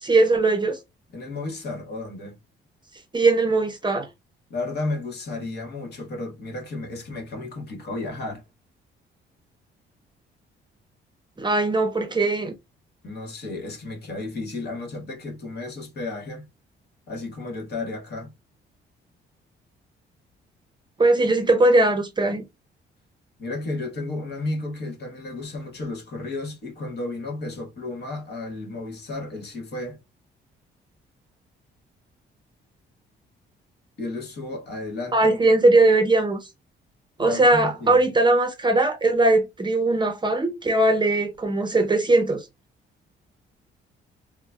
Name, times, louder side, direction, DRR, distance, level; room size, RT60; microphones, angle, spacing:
voice 1, 0.0-0.8 3.1-4.1 11.4-12.5 21.0-22.4 35.1-36.4 37.2-42.4, right 2 dB, 25° right, 0.6 m, -20 dB
voice 2, 1.1-2.4 4.5-8.4 13.0-16.5 17.1-18.3 23.4-30.0 34.0-35.4 37.2-38.0, left 2 dB, 55° left, 1.3 m, -33 dB
3.8 x 2.1 x 2.3 m
cardioid pair, 90°, 20 cm